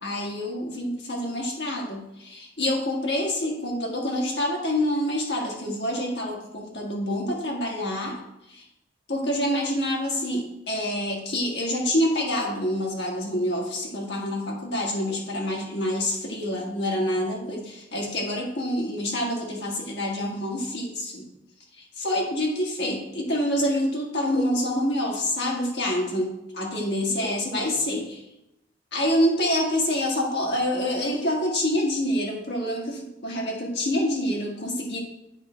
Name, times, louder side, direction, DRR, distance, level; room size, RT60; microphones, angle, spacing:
voice 1, 0.0-8.2 8.5-8.6 9.1-21.2 21.8-28.2 28.9-35.0, left 1 dB, 75° left, -1 dB, 1.6 m, -27 dB
8.3 x 3.3 x 5.1 m, 0.86 s
head